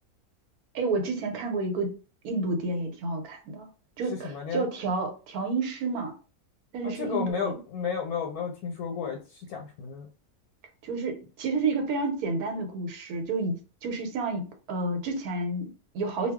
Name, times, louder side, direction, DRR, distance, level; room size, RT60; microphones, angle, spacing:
voice 1, 0.7-1.9 2.2-3.7 4.0-6.1 6.7-7.6 10.8-13.6 13.8-16.3, right 3 dB, 80° right, 1.1 m, -30 dB
voice 2, 4.1-4.7 6.8-10.1, left 6 dB, 90° left, 1.1 m, -33 dB
2.3 x 2.3 x 3.4 m
omnidirectional pair, 1.6 m